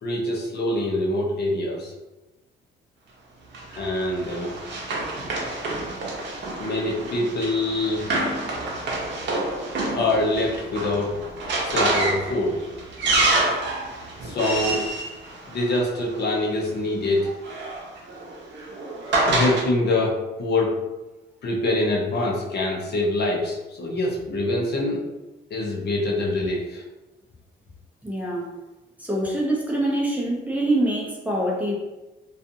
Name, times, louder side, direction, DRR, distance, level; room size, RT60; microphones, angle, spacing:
voice 1, 0.0-1.9 3.7-4.5 6.6-8.1 9.9-11.2 11.6-12.6 14.2-14.9 15.5-17.4 19.2-20.8 21.4-25.0 25.5-26.8, left 2 dB, 55° left, -2 dB, 0.7 m, -24 dB
Run, 3.5-16.2 17.2-19.7, right 2 dB, 65° right, 0.7 m, -27 dB
voice 2, 28.0-28.5 29.0-31.7, right 1 dB, 5° right, -3 dB, 0.6 m, -24 dB
2.4 x 2.4 x 2.7 m, 1.1 s
cardioid pair, 90°, 20 cm